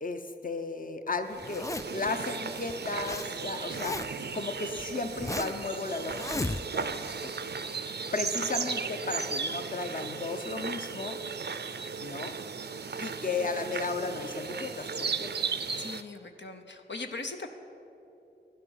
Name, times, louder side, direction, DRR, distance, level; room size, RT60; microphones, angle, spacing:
voice 1, 0.0-4.0 4.3-7.4 8.1-11.2 12.0-12.4 13.0-15.3, left 3 dB, 50° left, 7 dB, 0.8 m, -35 dB
sound 1, 1.3-16.0, right 5 dB, 70° right, 0.5 m, -36 dB
Zipper (clothing), 1.4-2.1 2.7-3.3 3.5-4.3 4.8-5.6 6.1-6.9, left 2 dB, 20° left, 0.3 m, -35 dB
voice 2, 15.8-17.5, left 3 dB, 85° left, 5 dB, 0.8 m, -39 dB
12.0 x 10.0 x 7.1 m, 3.0 s
wide cardioid pair, 45°, 18 cm